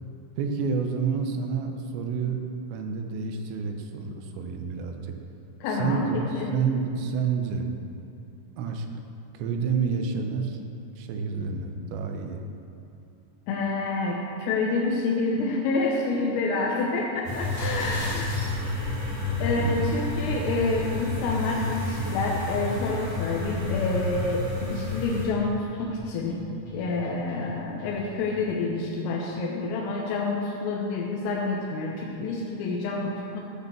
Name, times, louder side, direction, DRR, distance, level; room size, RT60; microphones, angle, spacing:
voice 1, 0.4-2.4 2.7-5.1 5.7-6.2 6.5-7.7 8.6-8.9 9.3-10.6 11.0-12.4 19.6-19.8, right 5 dB, 75° right, 4 dB, 2.8 m, -29 dB
voice 2, 5.6-6.5 11.4-11.5 13.5-18.3 19.4-33.4, left 3 dB, 85° left, -2 dB, 3.7 m, -28 dB
sound 1, 17.2-25.3, left 2 dB, 40° right, 3.5 m, -30 dB
sound 2, 17.3-18.6, equal, 25° left, 2.8 m, -37 dB
sound 3, 21.3-28.7, right 1 dB, 60° left, 1.6 m, -45 dB
13.5 x 6.8 x 6.8 m, 2.7 s
omnidirectional pair, 5.8 m